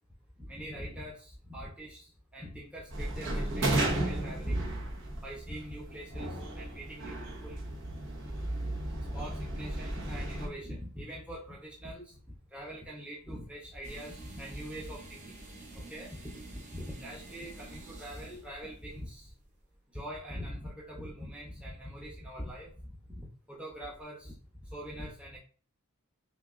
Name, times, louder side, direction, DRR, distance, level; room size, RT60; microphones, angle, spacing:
voice 1, 0.4-4.7 5.1-8.0 9.1-12.2 12.5-15.4 15.7-19.3 19.9-25.4, equal, 5° right, -4 dB, 0.9 m, -43 dB
sound 1, 2.9-10.5, right 1 dB, 60° right, 1.2 m, -34 dB
sound 2, 13.8-19.8, right 2 dB, 35° right, 1.0 m, -49 dB
5.8 x 2.8 x 2.6 m, 0.40 s
head